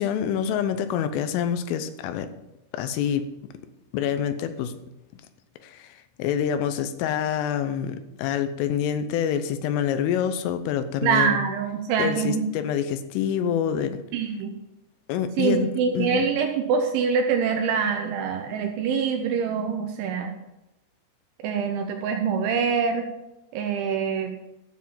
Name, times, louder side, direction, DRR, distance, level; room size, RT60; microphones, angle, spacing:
voice 1, 0.0-2.3 2.7-3.3 3.9-4.8 5.6-5.9 6.2-11.4 12.0-14.0 15.1-15.7 15.9-16.3, left 9 dB, 80° left, 10 dB, 3.4 m, -26 dB
voice 2, 11.0-12.5 14.1-14.5 15.4-20.3 21.4-23.1 23.5-24.3, right 6 dB, 75° right, 4 dB, 3.2 m, -25 dB
13.5 x 7.4 x 5.6 m, 0.92 s
omnidirectional pair, 5.8 m